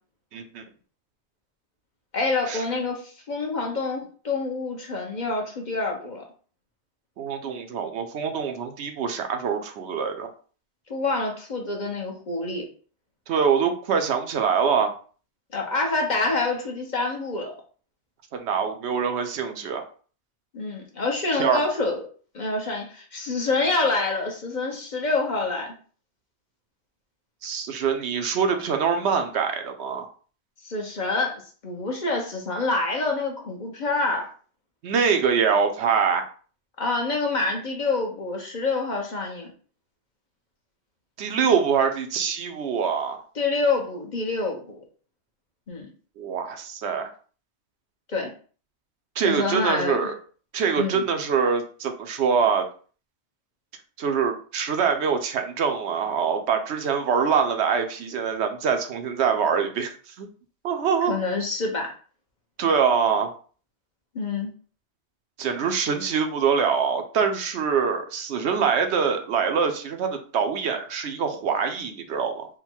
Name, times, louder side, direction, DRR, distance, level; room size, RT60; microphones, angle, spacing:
voice 1, 0.3-0.6 2.5-2.6 7.2-10.3 13.3-14.9 18.3-19.9 21.4-21.6 27.4-30.1 34.8-36.3 41.2-43.2 46.2-47.1 49.2-50.1 50.5-52.7 54.0-60.3 60.6-61.2 62.6-63.3 65.4-72.5, right 6 dB, 75° right, 5 dB, 0.9 m, -24 dB
voice 2, 2.1-6.2 10.9-12.6 15.5-17.5 20.5-22.0 22.3-25.7 30.6-34.3 36.8-39.5 43.4-44.8 45.7-45.9 48.1-48.3 49.2-50.0 50.7-51.0 61.1-61.9 64.1-64.5, left 3 dB, 45° left, 1 dB, 0.9 m, -27 dB
3.7 x 2.2 x 4.4 m, 0.41 s
omnidirectional pair, 1.1 m